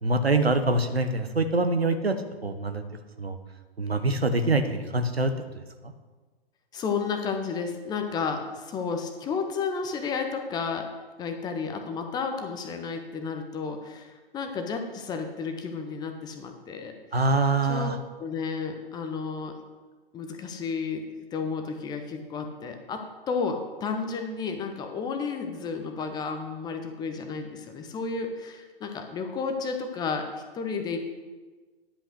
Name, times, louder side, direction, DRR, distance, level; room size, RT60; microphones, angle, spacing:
voice 1, 0.0-2.2 2.4-2.8 3.2-3.4 3.8-5.3 5.8-5.9 17.1-18.0, right 2 dB, 85° right, 8 dB, 0.9 m, -24 dB
voice 2, 6.7-10.9 11.2-16.9 17.7-17.9 18.2-19.6 20.1-21.0 21.3-31.0, left 5 dB, 15° left, 5 dB, 0.7 m, -32 dB
10.0 x 5.6 x 6.4 m, 1.3 s
figure-of-eight pair, 110°, 30 cm